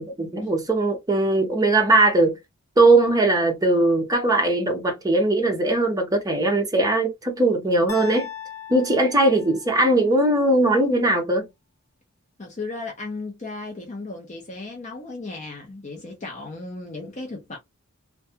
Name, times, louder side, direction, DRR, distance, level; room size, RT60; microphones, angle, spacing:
voice 1, 0.0-2.4 2.8-8.3 8.7-11.4, right 2 dB, 15° right, 0.7 m, -20 dB
sound 1, 7.9-10.0, left 9 dB, 70° left, 1.0 m, -37 dB
voice 2, 12.4-17.6, left 3 dB, 35° left, 0.6 m, -35 dB
2.3 x 2.2 x 2.7 m
head